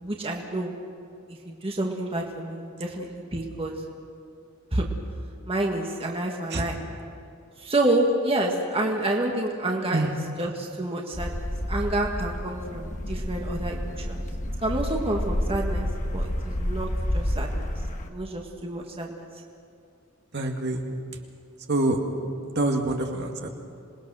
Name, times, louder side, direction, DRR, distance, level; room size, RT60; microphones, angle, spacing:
voice 1, 0.0-0.7 1.3-3.7 4.7-4.9 5.5-6.8 7.6-10.1 10.4-14.2 14.6-15.9 16.1-16.9 17.1-17.7 18.1-19.3, right 1 dB, 25° right, 0 dB, 1.8 m, -28 dB
sound 1, 11.1-18.1, left 1 dB, 35° left, 1.4 m, -29 dB
voice 2, 20.3-20.8 21.7-22.0 22.5-23.5, right 2 dB, 55° right, 2 dB, 2.2 m, -26 dB
27.0 x 20.5 x 6.4 m, 2.5 s
head